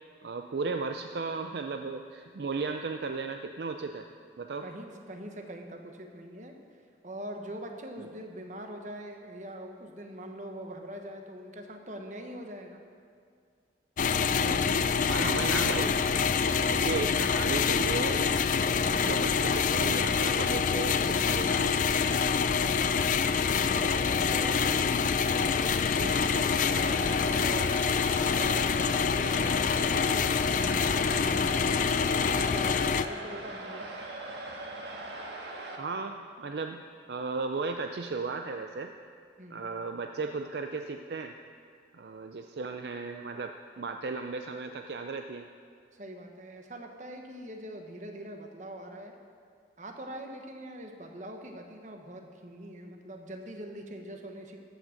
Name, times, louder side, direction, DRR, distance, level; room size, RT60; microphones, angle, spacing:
voice 1, 0.2-4.1 4.4-4.7 14.3-16.0 16.6-18.3 18.5-21.8 35.8-36.8 37.1-38.9 39.5-41.3 41.9-45.5, right 4 dB, 65° right, 6 dB, 0.4 m, -35 dB
voice 2, 4.6-6.6 7.0-12.8 22.5-23.1 23.7-27.7 28.2-33.9 39.4-39.7 45.9-49.1 49.8-54.6, right 1 dB, 45° right, 3 dB, 1.1 m, -42 dB
sound 1, 14.0-33.1, left 6 dB, 45° left, 0.3 m, -26 dB
sound 2, 26.1-35.8, right 2 dB, 80° right, 1.5 m, -40 dB
14.0 x 6.1 x 6.5 m, 2.2 s
head